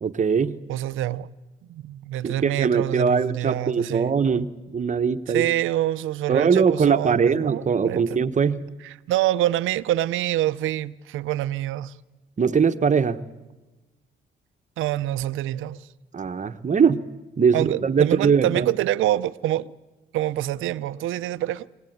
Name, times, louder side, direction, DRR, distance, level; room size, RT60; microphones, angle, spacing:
voice 1, 0.0-0.6 2.2-5.5 6.3-8.6 12.4-13.2 16.1-17.0 17.4-18.7, right 6 dB, 40° right, 1.2 m, -21 dB
voice 2, 0.7-1.3 1.7-4.1 5.3-8.2 8.8-11.9 14.8-15.9 17.5-19.7 20.1-21.7, right 14 dB, 85° right, 0.8 m, -26 dB
24.5 x 18.0 x 9.4 m
cardioid pair, 90°, 20 cm